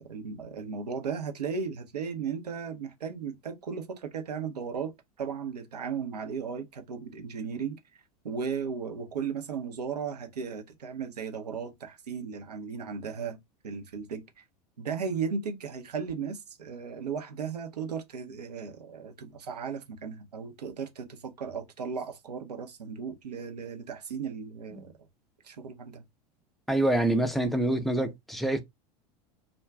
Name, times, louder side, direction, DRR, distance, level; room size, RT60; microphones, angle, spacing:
voice 1, 0.0-7.8 8.2-13.4 13.6-14.4 14.8-24.9 25.4-26.0, right 6 dB, 75° right, 0.7 m, -36 dB
voice 2, 26.7-28.6, right 1 dB, ahead, 0.5 m, -26 dB
2.4 x 2.2 x 3.4 m
figure-of-eight pair, 85°, 21 cm